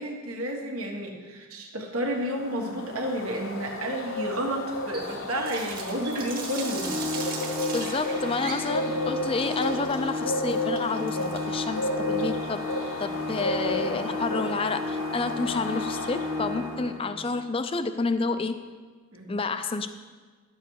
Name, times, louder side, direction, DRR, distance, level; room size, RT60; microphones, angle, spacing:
voice 1, 0.0-6.9 19.1-19.4, equal, 80° right, 1 dB, 1.6 m, -31 dB
sound 1, 2.2-16.8, left 1 dB, 70° left, 1.0 m, -33 dB
Water tap faucet, 4.9-13.9, right 4 dB, 40° right, 1.4 m, -40 dB
Organ, 6.6-17.4, left 2 dB, 10° right, 0.7 m, -33 dB
voice 2, 7.7-12.7 13.0-18.6 19.3-19.9, left 3 dB, 25° left, 10 dB, 0.4 m, -29 dB
11.5 x 7.1 x 4.7 m, 1.5 s
head